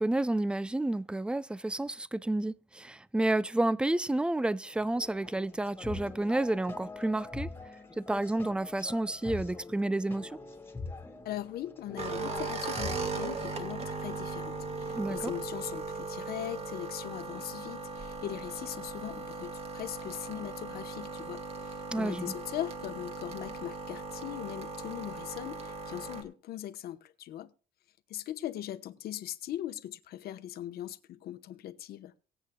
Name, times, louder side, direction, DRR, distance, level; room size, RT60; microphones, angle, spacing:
voice 1, 0.0-7.5 8.0-10.4 14.9-15.3 21.9-22.4, right 2 dB, 5° right, 0.4 m, -30 dB
I just need to close my eyes, 4.7-13.3, left 3 dB, 15° left, 1.8 m, -44 dB
voice 2, 11.2-27.5 28.1-32.1, left 12 dB, 65° left, 1.0 m, -40 dB
sound 1, 12.0-26.2, right 3 dB, 40° right, 2.0 m, -38 dB
23.5 x 8.2 x 2.3 m
cardioid pair, 110°, 17 cm